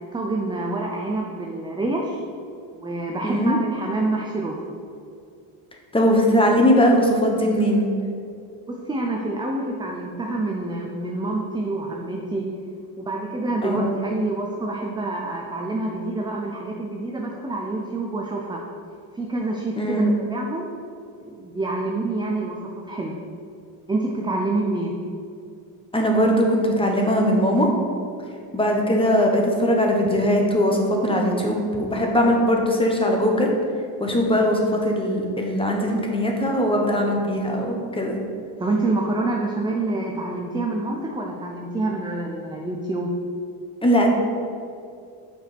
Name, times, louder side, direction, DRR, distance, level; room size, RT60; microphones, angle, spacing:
voice 1, 0.1-2.2 2.8-4.6 8.7-12.5 13.0-18.6 19.1-20.0 20.3-20.7 21.2-22.6 22.8-23.1 23.9-24.9 38.6-43.1, right 2 dB, 10° right, 0 dB, 0.5 m, -27 dB
voice 2, 3.2-3.6 5.9-7.9 13.6-14.0 19.8-20.1 25.9-27.7 28.5-33.5 34.0-38.2 43.8-44.1, equal, 10° left, 1 dB, 1.2 m, -20 dB
8.1 x 5.0 x 5.9 m, 2.4 s
cardioid pair, 135°, 48 cm